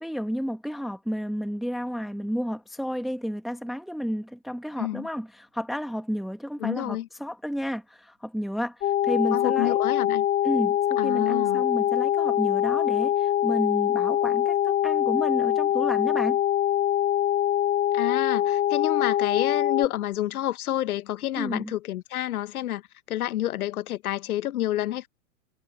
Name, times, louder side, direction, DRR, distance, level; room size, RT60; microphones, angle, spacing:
voice 1, 0.0-9.8 10.4-16.4 21.3-21.7, equal, ahead, 1.2 m, -31 dB
voice 2, 6.6-7.1 9.3-10.2 11.0-11.6 17.9-22.8 23.1-25.1, left 13 dB, 85° left, 0.9 m, -29 dB
sound 1, 8.8-19.9, left 11 dB, 20° left, 1.9 m, -24 dB
hypercardioid pair, 160°, 43 cm